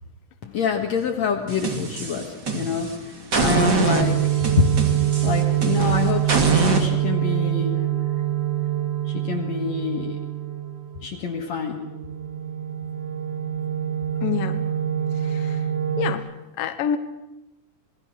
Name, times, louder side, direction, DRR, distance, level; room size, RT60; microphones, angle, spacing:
voice 1, 0.4-4.8 5.2-7.8 9.1-10.2 11.0-11.8, left 5 dB, 60° left, 2 dB, 2.5 m, -26 dB
sound 1, 1.5-2.9 3.3-6.9, right 3 dB, 35° right, 2.4 m, -24 dB
sound 2, 4.0-11.1 11.4-16.1, right 12 dB, 65° right, 2.9 m, -25 dB
voice 2, 14.2-14.6 15.2-15.7 16.0-16.3 16.6-17.0, left 9 dB, 80° left, 9 dB, 2.7 m, -27 dB
27.0 x 20.0 x 6.2 m, 0.96 s
omnidirectional pair, 3.9 m